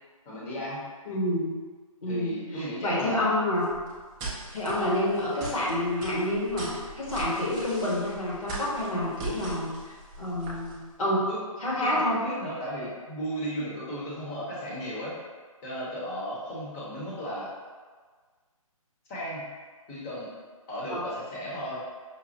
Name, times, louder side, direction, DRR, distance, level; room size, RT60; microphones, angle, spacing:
voice 1, 0.3-0.9 2.1-3.3 4.8-4.9 11.3-11.4 11.8-15.2 15.6-17.5 19.1-19.5 19.9-20.3 20.7-21.8, equal, 20° left, -7 dB, 0.9 m, -35 dB
voice 2, 1.1-1.5 2.0-3.7 4.5-11.3 11.6-12.2 20.9-21.0, left 1 dB, 70° left, -5 dB, 1.4 m, -28 dB
sound 1, 3.6-10.9, right 2 dB, 10° right, 0.4 m, -40 dB
5.1 x 2.2 x 2.8 m, 1.5 s
hypercardioid pair, 150°, 18 cm